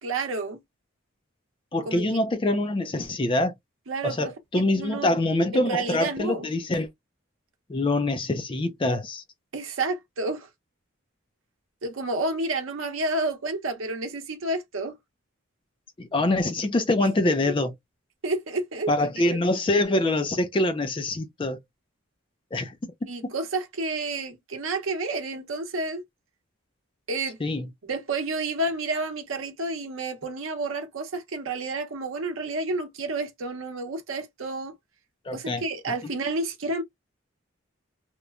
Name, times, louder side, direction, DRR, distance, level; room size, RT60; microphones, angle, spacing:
voice 1, 0.0-0.6 1.9-2.0 3.9-5.1 5.5-6.5 9.5-10.5 11.8-15.0 17.0-17.1 18.2-18.9 23.1-26.0 27.1-27.4 27.9-34.7 35.3-36.8, right 2 dB, 75° right, 0.8 m, -30 dB
voice 2, 1.7-3.5 4.0-6.9 7.7-9.2 16.0-17.7 18.9-21.6 22.5-22.8 23.2-23.3 27.4-27.7 35.3-35.6, left 2 dB, 25° left, 0.4 m, -25 dB
2.9 x 2.1 x 2.3 m
head